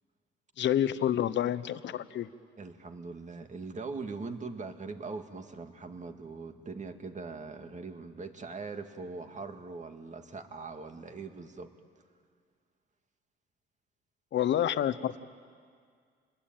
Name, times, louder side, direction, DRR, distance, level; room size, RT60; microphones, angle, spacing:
voice 1, 0.6-2.3 14.3-15.2, left 11 dB, 65° left, 13 dB, 1.0 m, -28 dB
voice 2, 2.6-11.7, right 4 dB, 35° right, 6 dB, 2.1 m, -41 dB
29.0 x 21.0 x 9.0 m, 2.1 s
cardioid pair, 90°, 20 cm